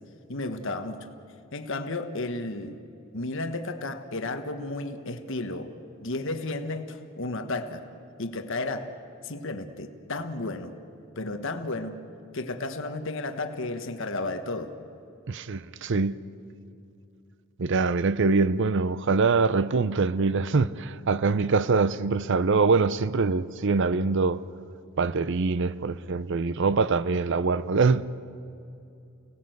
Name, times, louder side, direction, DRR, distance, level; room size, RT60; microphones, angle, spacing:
voice 1, 0.3-1.1 1.5-2.7 3.1-5.7 6.0-7.8 8.2-8.9 9.2-10.7 11.2-12.0 12.3-14.7, left 2 dB, 65° left, 1.3 m, -33 dB
voice 2, 15.3-16.2 17.6-24.4 25.0-28.0, right 4 dB, 60° right, 0.6 m, -24 dB
29.5 x 18.5 x 7.8 m
head